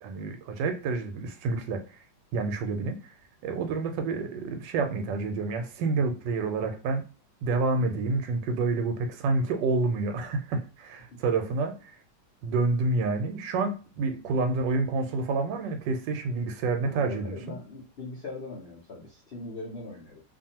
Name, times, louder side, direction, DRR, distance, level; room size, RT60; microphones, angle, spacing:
voice 1, 0.0-1.8 2.3-3.0 3.4-7.0 7.4-12.0 12.4-17.4, right 3 dB, 85° right, 6 dB, 1.3 m, -28 dB
voice 2, 16.8-20.2, left 2 dB, 65° left, -4 dB, 0.5 m, -40 dB
2.6 x 2.5 x 2.7 m, 0.35 s
omnidirectional pair, 1.9 m